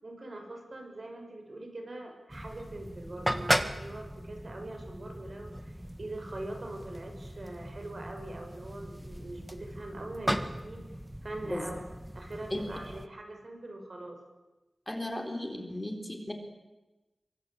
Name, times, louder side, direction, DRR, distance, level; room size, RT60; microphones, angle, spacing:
voice 1, 0.0-11.8 12.1-14.2, right 2 dB, 55° right, 3 dB, 6.5 m, -43 dB
sound 1, 2.3-13.1, equal, 5° right, 1.7 m, -37 dB
voice 2, 14.9-16.3, left 1 dB, 15° left, 4 dB, 4.0 m, -35 dB
26.0 x 23.5 x 8.9 m, 1.1 s
wide cardioid pair, 85°, 0 cm